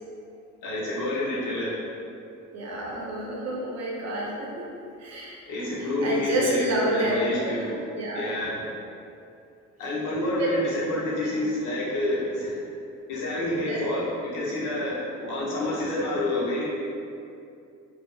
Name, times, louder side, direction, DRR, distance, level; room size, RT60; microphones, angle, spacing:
voice 1, 0.6-1.8 5.5-7.7 8.1-8.7 9.8-12.6 13.1-16.6, left 1 dB, 80° left, -6 dB, 0.9 m, -28 dB
voice 2, 2.5-4.7 5.0-5.4 5.8-8.2 10.4-10.6 11.3-11.4 13.6-13.9 15.2-15.4, right 1 dB, 60° right, -4 dB, 0.9 m, -29 dB
3.1 x 2.0 x 3.6 m, 2.5 s
cardioid pair, 90°, 30 cm